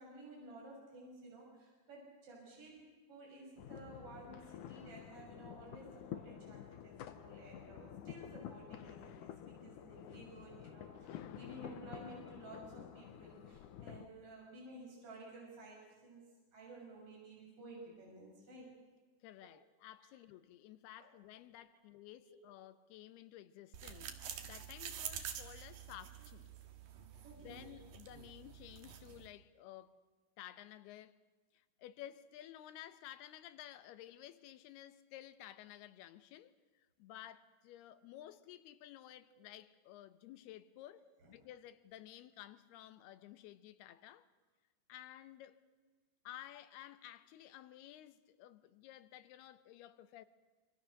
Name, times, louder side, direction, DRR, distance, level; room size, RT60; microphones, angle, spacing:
voice 1, 0.0-2.8 3.1-16.3 16.5-18.7 19.4-19.5 20.0-20.1 21.0-21.1 22.1-22.4 26.1-26.2 27.2-27.8 39.3-39.4 41.2-41.3, right 2 dB, 35° right, 7.3 m, -54 dB
sound 1, 3.6-14.1, left 10 dB, 65° left, 2.2 m, -50 dB
voice 2, 19.2-26.5 27.4-29.9 30.4-31.2 31.5-41.0 41.3-44.3 44.9-45.6 46.2-50.3, left 13 dB, 85° left, 3.0 m, -54 dB
sound 2, 23.7-29.3, right 9 dB, 65° right, 3.2 m, -48 dB
26.5 x 26.0 x 6.6 m
omnidirectional pair, 4.5 m